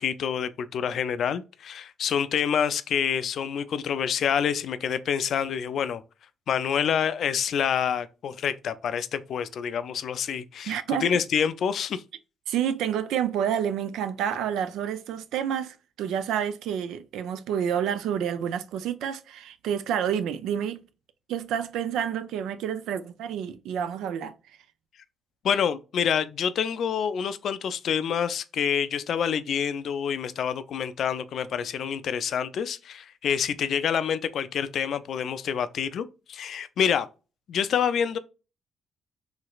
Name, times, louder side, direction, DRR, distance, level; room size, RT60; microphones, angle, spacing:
voice 1, 0.0-6.0 6.5-12.0 25.4-37.1 37.5-38.2, left 8 dB, 65° left, 0.3 m, -27 dB
voice 2, 10.7-11.2 12.5-20.8 21.3-24.3, right 9 dB, 85° right, 0.4 m, -29 dB
3.2 x 2.9 x 2.3 m
cardioid pair, 90°, 0 cm